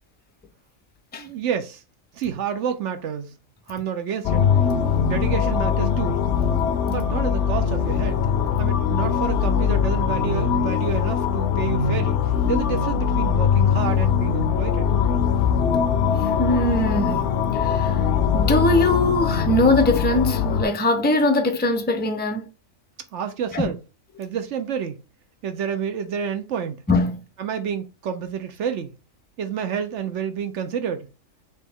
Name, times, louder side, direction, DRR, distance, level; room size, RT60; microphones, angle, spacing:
voice 1, 1.2-1.8 2.1-3.3 3.7-4.5 5.0-6.2 6.9-8.2 8.6-12.2 12.4-14.9 23.1-23.8 24.2-25.0 25.4-26.8 27.4-28.9 29.4-31.1, right 7 dB, 70° right, 0.9 m, -29 dB
sound 1, 4.2-20.6, left 7 dB, 65° left, 0.8 m, -21 dB
voice 2, 16.2-17.3 17.5-18.0 18.3-22.5 23.5-23.7 26.9-27.2, left 1 dB, 15° left, 0.4 m, -21 dB
4.5 x 2.9 x 3.5 m
omnidirectional pair, 1.3 m